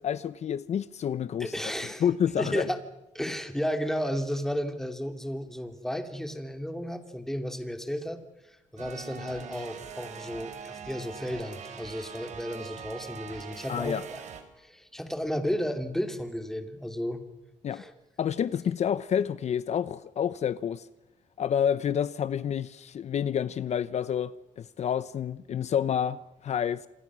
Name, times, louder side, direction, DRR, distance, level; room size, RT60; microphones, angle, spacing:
voice 1, 0.0-1.5 2.0-2.6 13.7-14.0 17.6-17.8 18.2-20.9 21.4-26.9, left 8 dB, 55° left, 0.8 m, -29 dB
voice 2, 1.4-2.0 2.4-2.8 3.1-8.2 8.4-14.2 14.6-17.2 17.7-17.9, equal, 5° left, 2.8 m, -33 dB
sound 1, 8.8-14.4, right 7 dB, 60° right, 4.2 m, -43 dB
27.5 x 26.0 x 6.2 m
cardioid pair, 105°, 13 cm